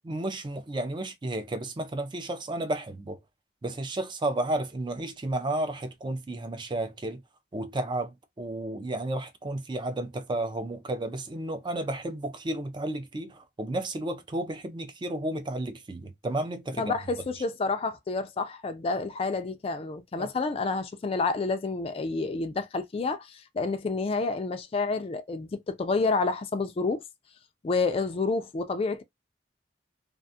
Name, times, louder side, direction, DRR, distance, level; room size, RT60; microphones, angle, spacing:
voice 1, 0.0-3.2 3.6-7.2 7.5-16.9 20.2-20.3, right 1 dB, 25° right, 0.4 m, -32 dB
voice 2, 16.8-27.0 27.6-29.0, left 3 dB, 35° left, 0.4 m, -29 dB
2.4 x 2.3 x 2.7 m
head